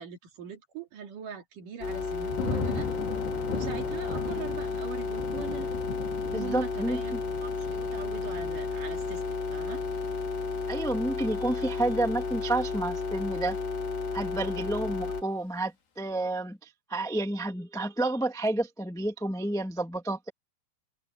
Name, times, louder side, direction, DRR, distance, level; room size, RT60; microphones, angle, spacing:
voice 1, 0.0-2.9 3.5-5.7 6.3-9.8, right 8 dB, 55° right, 3.8 m, -41 dB
sound 1, 1.8-15.2, left 4 dB, 35° left, 2.7 m, -32 dB
Thunder / Rain, 1.9-12.8 13.2-13.7, left 4 dB, 85° left, 6.3 m, -39 dB
voice 2, 6.3-7.2 10.7-13.6 14.1-20.3, right 2 dB, ahead, 1.4 m, -30 dB
omnidirectional pair, 4.6 m